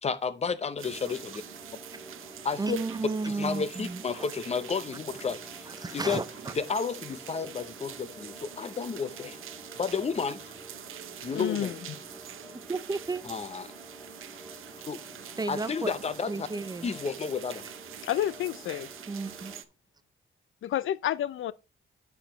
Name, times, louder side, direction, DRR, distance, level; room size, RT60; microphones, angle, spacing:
voice 1, 0.0-1.4 2.4-2.8 3.3-6.2 6.6-9.4 9.8-10.4 11.2-11.7 13.3-13.7 14.9-15.0 15.5-16.5 16.8-17.7, left 5 dB, 30° left, 0.6 m, -32 dB
sound 1, 0.8-19.6, equal, 10° left, 3.1 m, -49 dB
sound 2, 0.8-19.6, right 10 dB, 90° right, 0.7 m, -45 dB
voice 2, 2.6-4.3 5.7-6.5 10.8-10.9 12.7-13.2 15.4-15.9 16.3-16.9 19.1-19.5, right 3 dB, 20° right, 0.4 m, -33 dB
voice 3, 11.3-11.8 18.0-18.9 20.6-21.5, left 11 dB, 80° left, 0.4 m, -30 dB
9.0 x 7.0 x 3.0 m
wide cardioid pair, 145°, 21 cm